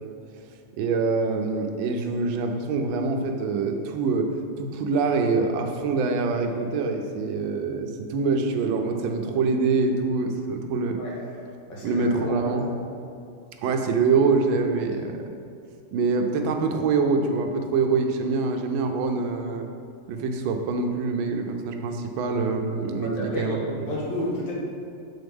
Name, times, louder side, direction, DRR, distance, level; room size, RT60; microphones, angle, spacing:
voice 1, 0.8-4.3 4.6-11.0 11.8-12.7 13.6-15.3 15.9-19.7 20.1-24.0, right 4 dB, 85° right, 4 dB, 1.4 m, -25 dB
voice 2, 11.7-12.8 23.0-24.5, equal, 80° left, -4 dB, 2.1 m, -30 dB
7.8 x 4.1 x 3.5 m, 2.4 s
omnidirectional pair, 2.1 m